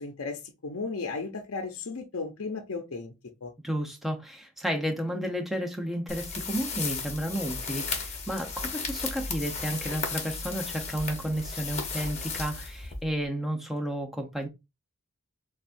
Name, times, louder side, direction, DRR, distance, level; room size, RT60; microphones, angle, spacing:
voice 1, 0.0-3.1 3.4-3.5, left 4 dB, 65° left, 0.6 m, -35 dB
voice 2, 3.6-14.5, equal, ahead, 0.8 m, -32 dB
sound 1, 6.1-13.2, left 4 dB, 30° left, 1.0 m, -35 dB
7.0 x 2.4 x 2.6 m
head